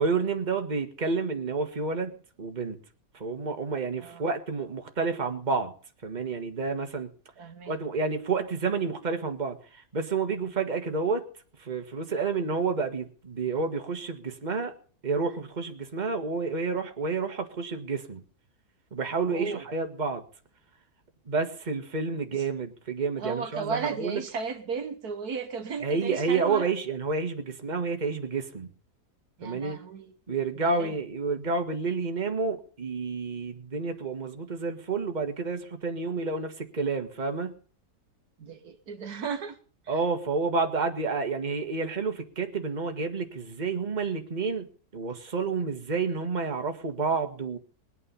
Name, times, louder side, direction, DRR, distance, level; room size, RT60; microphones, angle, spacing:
voice 1, 0.0-2.8 3.1-5.7 6.0-7.1 7.7-11.2 11.6-14.7 15.0-18.2 18.9-20.2 21.3-24.2 25.8-28.7 29.4-29.8 30.3-37.5 39.9-44.7 44.9-47.6, right 4 dB, 30° right, 1.7 m, -29 dB
voice 2, 7.4-7.8 19.3-19.7 22.3-22.5 23.2-26.7 29.4-30.1 30.6-30.9 38.4-39.6 39.8-40.0, right 5 dB, 70° right, 1.7 m, -35 dB
22.0 x 8.9 x 5.6 m
omnidirectional pair, 1.7 m